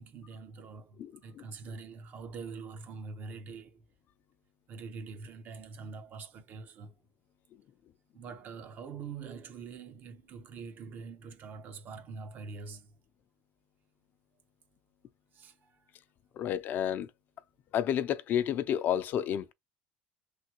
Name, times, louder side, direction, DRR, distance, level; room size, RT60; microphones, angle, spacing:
voice 1, 0.0-3.9 4.7-7.0 8.1-13.0 15.3-15.8, right 5 dB, 50° right, 0.8 m, -44 dB
voice 2, 16.4-17.1 17.7-19.5, left 10 dB, 50° left, 0.5 m, -30 dB
3.4 x 2.1 x 3.0 m
supercardioid pair, 110°, 4 cm